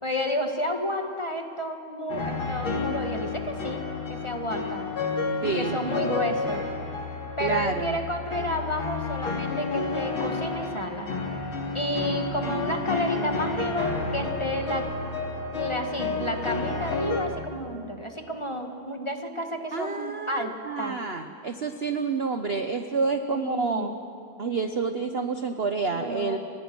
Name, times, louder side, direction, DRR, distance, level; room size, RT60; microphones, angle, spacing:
voice 1, 0.0-3.8 4.1-4.9 5.5-6.6 7.4-11.1 11.7-14.8 15.5-21.0 23.3-24.0 25.9-26.4, equal, 15° left, 3 dB, 1.7 m, -31 dB
sound 1, 2.1-17.2, left 3 dB, 80° left, 3.7 m, -31 dB
voice 2, 5.4-5.8 7.4-8.0 19.7-23.9 24.4-26.4, right 4 dB, 40° right, 7 dB, 0.9 m, -28 dB
30.0 x 24.5 x 6.2 m, 2.6 s
omnidirectional pair, 2.2 m